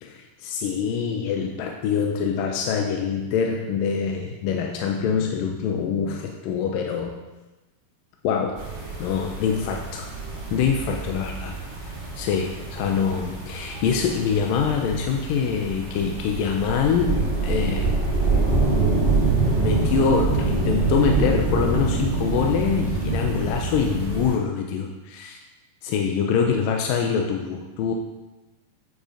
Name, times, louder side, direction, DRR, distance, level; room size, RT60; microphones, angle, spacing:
voice 1, 0.0-7.2 8.2-8.6 9.0-10.1 10.5-11.5 12.2-17.9 19.6-25.4 25.8-27.9, left 6 dB, 85° left, 2 dB, 2.4 m, -24 dB
sound 1, 8.5-24.4, right 3 dB, 85° right, 0.6 m, -25 dB
9.1 x 5.5 x 5.0 m, 1.1 s
omnidirectional pair, 3.9 m